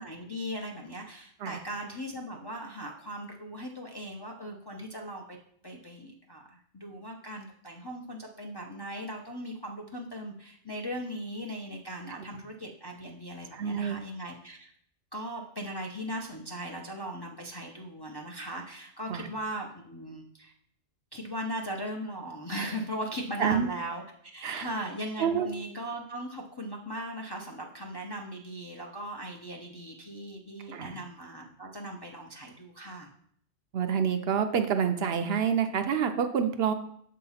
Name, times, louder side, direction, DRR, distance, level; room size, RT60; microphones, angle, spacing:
voice 1, 0.0-5.4 5.6-14.7 15.1-20.5 21.1-24.0 24.3-33.1, equal, 30° left, -1 dB, 0.5 m, -38 dB
voice 2, 13.5-14.0 19.1-19.3 23.4-23.7 24.4-24.7 25.2-25.5 30.7-31.0 33.7-36.7, right 7 dB, 65° right, 7 dB, 0.7 m, -27 dB
7.0 x 2.8 x 5.5 m, 0.66 s
omnidirectional pair, 1.2 m